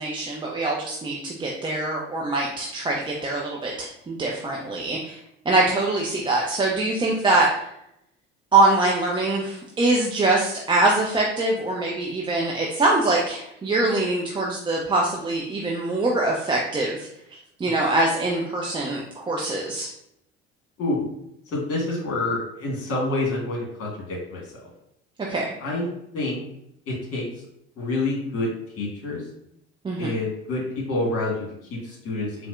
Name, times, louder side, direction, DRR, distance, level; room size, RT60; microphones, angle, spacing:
voice 1, 0.0-5.2 5.5-7.5 8.5-17.1 17.6-19.9 25.3-25.5 29.8-30.1, right 2 dB, 15° right, -2 dB, 0.4 m, -23 dB
voice 2, 21.5-24.4 25.6-25.9 26.1-26.4 26.9-27.2 27.8-28.5 28.8-29.2 30.0-32.5, left 2 dB, 40° left, -2 dB, 1.5 m, -27 dB
4.1 x 2.1 x 2.4 m, 0.78 s
figure-of-eight pair, 60°, 34 cm